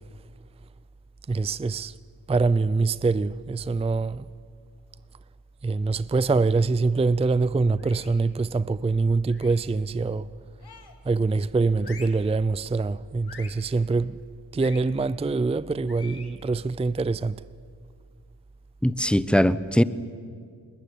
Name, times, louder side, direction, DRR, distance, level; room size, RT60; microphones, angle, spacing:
voice 1, 1.3-1.9 2.3-4.3 5.6-10.3 11.0-14.2 14.5-17.4, right 3 dB, 15° right, 0.5 m, -24 dB
sound 1, 7.8-8.3 9.3-9.7 10.6-11.1 11.8-12.3 13.3-13.7 14.6-14.9 15.9-16.4, left 5 dB, 65° left, 2.5 m, -46 dB
voice 2, 18.8-19.8, equal, ahead, 0.9 m, -20 dB
21.0 x 20.0 x 9.5 m
supercardioid pair, 45°, 42 cm